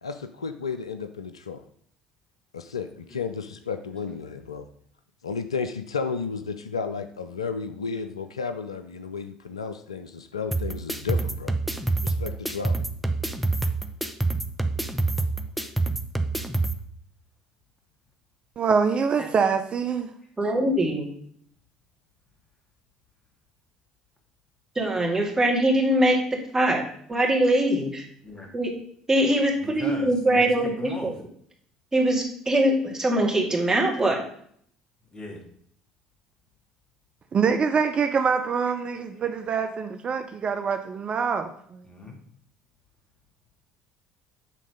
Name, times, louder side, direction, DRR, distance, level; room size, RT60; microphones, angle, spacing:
voice 1, 0.0-1.6 2.5-4.6 5.2-11.5 12.0-12.9, left 5 dB, 90° left, 9 dB, 0.4 m, -33 dB
sound 1, 10.5-16.7, right 2 dB, ahead, 0.7 m, -27 dB
voice 2, 18.6-20.1 37.3-41.8, right 6 dB, 40° right, 8 dB, 0.6 m, -25 dB
voice 3, 20.4-21.1 24.8-26.8 27.1-28.0 28.5-28.7 29.1-31.1 31.9-34.2, right 1 dB, 20° right, 0 dB, 2.1 m, -22 dB
voice 4, 29.6-31.1 35.1-35.4 38.7-38.8 39.3-39.4 41.8-42.2, left 1 dB, 25° left, 0 dB, 2.3 m, -39 dB
7.5 x 3.8 x 5.1 m, 0.63 s
hypercardioid pair, 60°, 3 cm